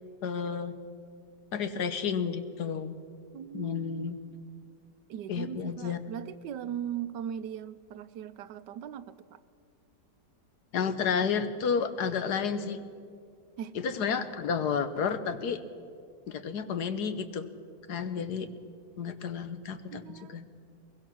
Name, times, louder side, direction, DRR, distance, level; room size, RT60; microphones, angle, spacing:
voice 1, 0.2-0.8 1.5-2.9 3.5-4.2 5.3-6.0 10.7-12.8 13.7-15.6 16.3-17.5 17.9-18.5 19.0-20.4, left 6 dB, 70° left, 11 dB, 1.6 m, -31 dB
voice 2, 3.3-4.1 5.1-9.4 13.6-13.8 19.9-20.4, right 9 dB, 90° right, 14 dB, 1.4 m, -39 dB
22.0 x 21.0 x 6.2 m, 2.3 s
omnidirectional pair, 1.8 m